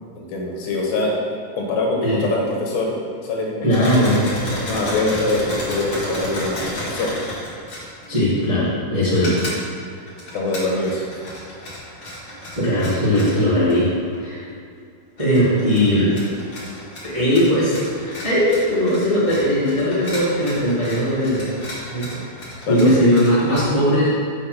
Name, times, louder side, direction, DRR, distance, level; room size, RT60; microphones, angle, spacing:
voice 1, 0.2-1.2 1.5-2.9 3.2-3.7 4.6-7.1 10.3-11.0 22.7-22.9, left 2 dB, 85° left, -2 dB, 3.0 m, -23 dB
voice 2, 3.6-4.2 8.1-9.4 10.8-10.9 12.6-13.9 14.2-14.5 15.2-16.2 17.0-21.5 21.9-22.2 22.7-24.1, equal, 20° right, -10 dB, 1.0 m, -19 dB
sound 1, 3.7-8.7 9.1-9.7 10.0-14.4 15.2-23.7, left 1 dB, 40° left, 2.1 m, -32 dB
6.8 x 5.2 x 5.6 m, 2.3 s
omnidirectional pair, 4.1 m